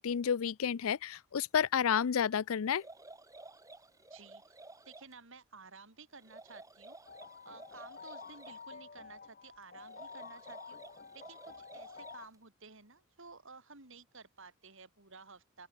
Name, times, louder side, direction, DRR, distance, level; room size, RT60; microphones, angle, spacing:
voice 1, 0.0-2.8, left 7 dB, 70° left, 0.4 m, -30 dB
sound 1, 2.7-5.1 6.2-8.6 9.8-12.3, right 2 dB, 15° right, 3.0 m, -54 dB
voice 2, 4.1-7.0 7.4-10.8 11.1-15.7, right 4 dB, 60° right, 3.8 m, -54 dB
sound 2, 7.1-12.3, left 5 dB, 40° left, 1.8 m, -50 dB
open air
head